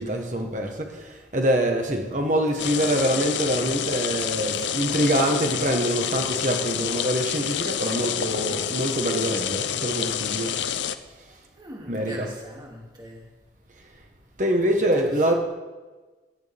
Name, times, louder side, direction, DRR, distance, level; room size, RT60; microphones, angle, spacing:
voice 1, 0.0-10.5 11.9-12.3 14.4-15.3, right 1 dB, 45° right, 3 dB, 1.4 m, -25 dB
sound 1, 2.6-11.0, left 8 dB, 85° left, 0.6 m, -28 dB
voice 2, 11.6-13.3 14.8-15.3, equal, 25° right, -2 dB, 2.5 m, -41 dB
16.5 x 11.0 x 3.6 m, 1.3 s
head